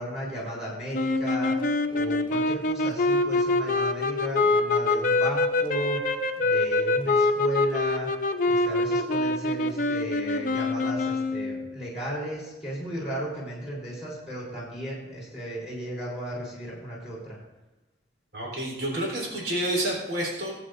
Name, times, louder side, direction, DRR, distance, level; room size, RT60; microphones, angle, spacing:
voice 1, 0.0-8.1 8.5-17.4, right 1 dB, 5° right, -6 dB, 3.8 m, -35 dB
sound 1, 0.9-11.7, left 2 dB, 50° left, 0.7 m, -25 dB
voice 2, 18.3-20.5, right 1 dB, 70° right, -3 dB, 3.7 m, -29 dB
22.5 x 8.0 x 2.6 m, 1.1 s
head